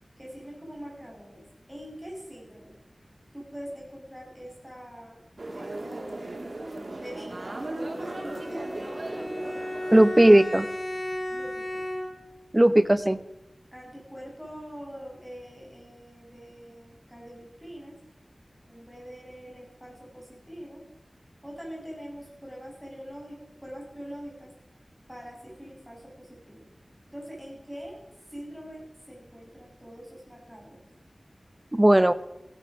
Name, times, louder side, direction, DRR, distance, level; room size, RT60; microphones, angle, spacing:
voice 1, 0.2-1.4 1.7-2.7 3.3-5.2 5.5-6.4 7.0-9.3 11.3-11.8 13.7-18.0 18.7-20.8 21.4-24.5 25.1-26.7 27.1-28.0 28.3-30.8, equal, 5° right, -3 dB, 6.7 m, -43 dB
sound 1, 5.4-10.8, right 2 dB, 60° right, 2.6 m, -37 dB
Bowed string instrument, 7.9-12.4, left 1 dB, 70° left, 5.6 m, -35 dB
voice 2, 9.9-10.7 12.5-13.2 31.7-32.1, right 1 dB, 20° right, 13 dB, 0.8 m, -17 dB
16.0 x 11.5 x 6.3 m, 0.92 s
wide cardioid pair, 65°, 0 cm